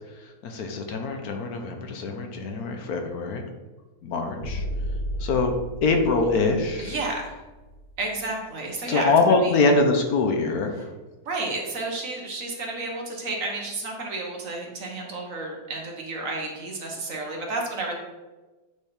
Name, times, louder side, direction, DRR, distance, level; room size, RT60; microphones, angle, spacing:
voice 1, 0.4-3.4 4.0-4.6 5.2-5.5 5.8-6.9 8.9-10.7, left 3 dB, 70° left, 4 dB, 1.2 m, -23 dB
sound 1, 4.4-8.4, equal, 20° left, 1.9 m, -34 dB
voice 2, 6.8-7.4 8.0-9.1 9.4-9.6 10.7-10.8 11.2-17.9, right 2 dB, 55° right, 0 dB, 1.5 m, -31 dB
8.1 x 3.5 x 4.3 m, 1.2 s
omnidirectional pair, 1.7 m